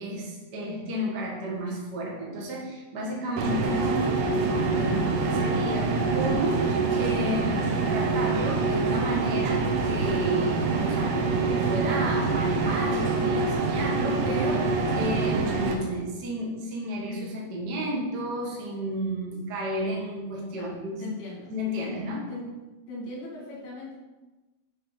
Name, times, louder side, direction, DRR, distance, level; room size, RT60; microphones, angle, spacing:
voice 1, 0.0-21.0 21.5-22.3, equal, 55° right, -3 dB, 1.1 m, -32 dB
sound 1, 3.4-15.7, right 3 dB, 85° right, 1.5 m, -25 dB
voice 2, 20.5-21.5 22.3-22.6 22.9-23.9, left 2 dB, 80° left, -5 dB, 4.8 m, -39 dB
10.5 x 5.0 x 4.1 m, 1.2 s
omnidirectional pair, 4.4 m